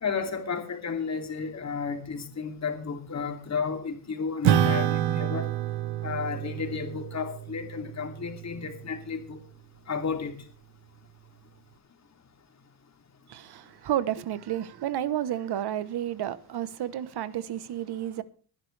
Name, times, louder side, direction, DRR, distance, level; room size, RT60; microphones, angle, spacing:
voice 1, 0.0-5.5 6.0-9.4 9.9-10.3, left 5 dB, 35° left, 2.9 m, -32 dB
Acoustic guitar / Strum, 4.4-9.2, right 11 dB, 85° right, 1.4 m, -28 dB
voice 2, 13.3-18.2, right 11 dB, 55° right, 1.1 m, -31 dB
20.5 x 10.5 x 3.4 m
cardioid pair, 130°, 48 cm